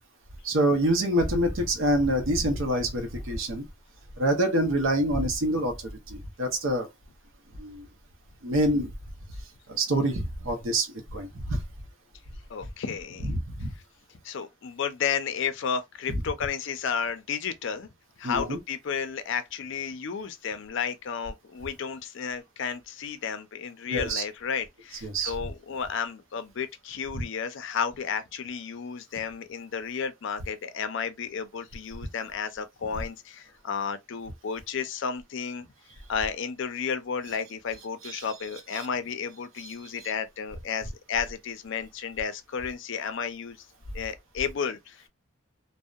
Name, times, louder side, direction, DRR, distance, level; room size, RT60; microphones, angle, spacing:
voice 1, 0.4-3.6 4.2-6.9 7.5-7.9 8.4-8.9 9.7-11.6 13.2-13.3 13.6-13.7 16.1-16.2 18.2-18.6 23.9-24.2 25.0-25.3 38.0-38.2, right 1 dB, 65° right, 0.7 m, -26 dB
voice 2, 12.5-13.3 14.2-17.9 18.2-35.7 36.1-43.6 43.9-45.1, left 6 dB, 60° left, 0.4 m, -32 dB
2.7 x 2.1 x 2.3 m
head